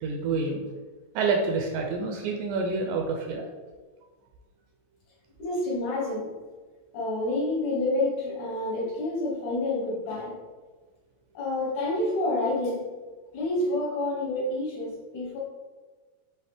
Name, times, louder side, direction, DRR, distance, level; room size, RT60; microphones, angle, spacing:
voice 1, 0.0-0.6 1.2-3.5, right 4 dB, 80° right, 2 dB, 1.9 m, -27 dB
voice 2, 5.4-6.3 6.9-10.3 11.3-12.8 13.3-15.4, left 2 dB, 70° left, -5 dB, 2.0 m, -28 dB
5.8 x 2.7 x 3.4 m, 1.4 s
omnidirectional pair, 4.0 m